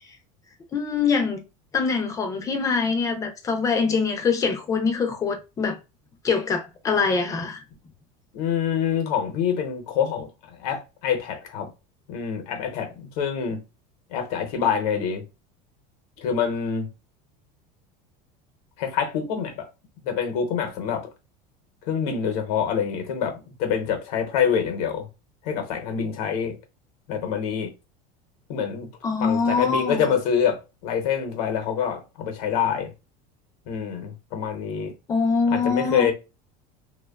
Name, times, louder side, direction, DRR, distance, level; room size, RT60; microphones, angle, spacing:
voice 1, 0.7-1.4 1.7-5.8 6.2-7.6 29.0-30.1 35.1-36.1, left 5 dB, 15° left, 0.4 m, -24 dB
voice 2, 8.3-11.7 12.1-13.6 14.1-15.2 16.2-16.9 18.8-19.7 20.0-21.1 21.9-25.1 25.4-26.6 27.1-27.7 28.5-28.9 29.2-32.9 33.7-34.9 35.5-36.1, left 7 dB, 80° left, 0.7 m, -26 dB
2.8 x 2.2 x 2.2 m
cardioid pair, 165°, 19 cm